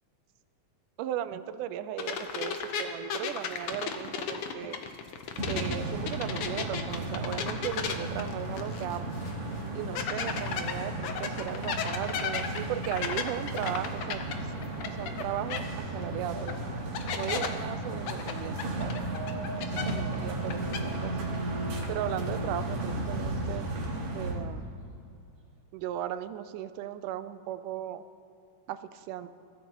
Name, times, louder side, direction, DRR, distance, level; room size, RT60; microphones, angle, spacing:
voice 1, 1.0-4.8 5.5-9.1 9.7-14.2 14.9-16.6 17.2-19.0 19.8-21.4 21.9-23.7 24.1-24.7 25.7-28.0 28.7-29.3, right 11 dB, 85° right, 12 dB, 2.1 m, -37 dB
sound 1, 2.0-5.8 6.1-9.0 9.3-9.4 10.0-15.2 15.5-15.6 16.5-16.6 16.9-17.5 18.1-20.2 20.4-20.8, left 7 dB, 75° left, 1.3 m, -34 dB
sound 2, 5.4-24.4, right 2 dB, 45° right, 2.1 m, -35 dB
sound 3, 14.3-15.3 15.6-23.4, right 3 dB, 65° right, 3.3 m, -47 dB
23.0 x 14.5 x 3.0 m, 2.4 s
omnidirectional pair, 3.7 m